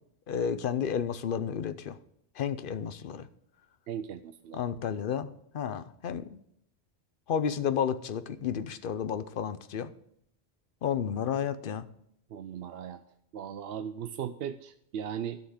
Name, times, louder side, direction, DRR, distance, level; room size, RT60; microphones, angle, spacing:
voice 1, 0.3-2.0 2.4-3.3 4.5-6.4 7.3-9.9 10.8-11.9, left 8 dB, 60° left, 13 dB, 0.8 m, -31 dB
voice 2, 3.9-4.6 12.3-13.0 13.3-15.4, right 8 dB, 70° right, 10 dB, 0.8 m, -37 dB
12.0 x 5.8 x 6.4 m, 0.73 s
omnidirectional pair, 1.1 m